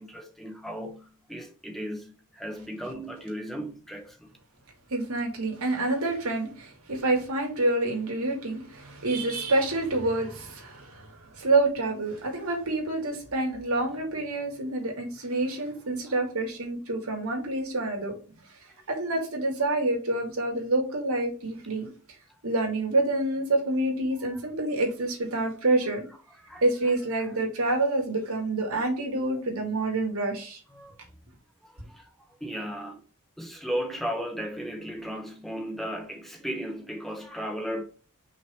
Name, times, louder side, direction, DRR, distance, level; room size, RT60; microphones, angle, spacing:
voice 1, 0.0-4.3 24.2-24.5 26.3-26.6 27.1-27.3 30.7-31.0 31.6-33.0 33.4-37.8, equal, ahead, 1.1 m, -36 dB
voice 2, 4.9-18.1 18.9-21.9 22.4-26.1 26.6-30.6, right 2 dB, 80° right, 2.7 m, -27 dB
5.8 x 4.1 x 4.4 m
head